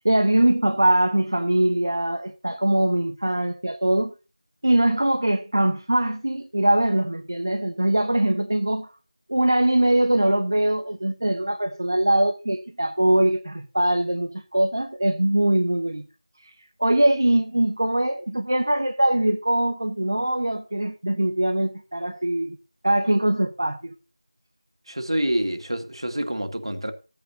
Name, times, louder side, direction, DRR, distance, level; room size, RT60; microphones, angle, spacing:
voice 1, 0.0-4.1 4.6-8.9 9.3-16.1 16.4-16.5 16.8-22.6 22.8-24.0, right 1 dB, 35° right, 0.9 m, -22 dB
voice 2, 24.9-26.9, right 1 dB, 55° right, 2.0 m, -27 dB
16.0 x 8.7 x 2.8 m
figure-of-eight pair, 175°, 3 cm